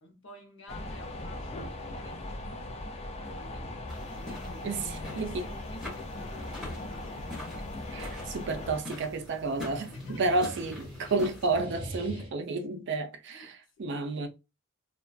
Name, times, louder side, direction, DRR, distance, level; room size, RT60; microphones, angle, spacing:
voice 1, 0.0-7.4 9.9-10.4 11.0-11.2 12.1-12.3 13.3-14.1, left 1 dB, 65° left, 0.7 m, -52 dB
sound 1, 0.7-8.8, left 1 dB, 30° left, 0.3 m, -39 dB
sound 2, 3.7-5.8 6.7-8.6 9.4-12.3, left 1 dB, 20° right, 1.0 m, -46 dB
sound 3, 3.9-11.6, left 2 dB, ahead, 1.1 m, -45 dB
voice 2, 4.6-5.4 7.9-14.3, right 3 dB, 60° right, 0.4 m, -31 dB
2.4 x 2.3 x 2.3 m
head